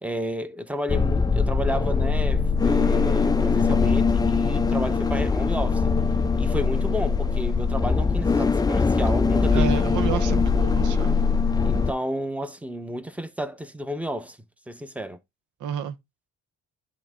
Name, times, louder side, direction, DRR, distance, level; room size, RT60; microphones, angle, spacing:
voice 1, 0.0-5.8 6.4-9.8 11.6-14.4 14.7-15.2, equal, 5° right, 0.9 m, -31 dB
sound 1, 0.9-11.9, left 5 dB, 15° left, 0.4 m, -22 dB
voice 2, 9.5-11.2 15.6-16.0, right 9 dB, 85° right, 1.0 m, -30 dB
10.5 x 3.6 x 3.6 m
cardioid pair, 90°, 30 cm